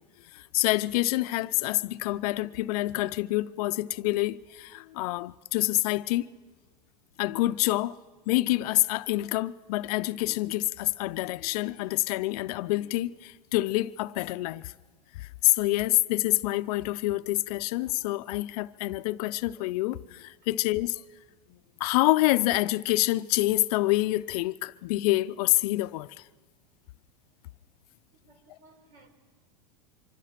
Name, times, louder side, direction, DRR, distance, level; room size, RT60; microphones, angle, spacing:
voice 1, 0.2-6.3 7.2-7.9 8.3-14.7 15.1-21.0 21.5-26.3, left 18 dB, 65° left, 0.6 m, -27 dB
voice 2, 28.1-29.1, right 2 dB, 55° right, 4.5 m, -58 dB
25.5 x 25.0 x 5.9 m
supercardioid pair, 125°, 21 cm